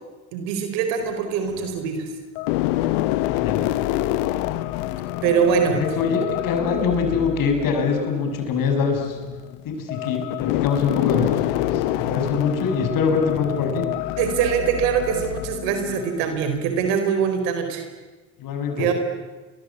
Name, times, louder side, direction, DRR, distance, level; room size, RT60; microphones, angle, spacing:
voice 1, 0.3-2.1 5.2-5.8 14.2-17.8 18.8-18.9, right 7 dB, 85° right, 6 dB, 4.6 m, -23 dB
sound 1, 1.0-1.8 2.3-16.9, left 16 dB, 85° left, 1.2 m, -27 dB
voice 2, 3.2-3.6 3.9-4.0 5.7-9.2 9.6-13.8 18.4-18.9, left 5 dB, 65° left, 4 dB, 6.8 m, -24 dB
29.5 x 23.5 x 8.6 m, 1.2 s
supercardioid pair, 85°, 37 cm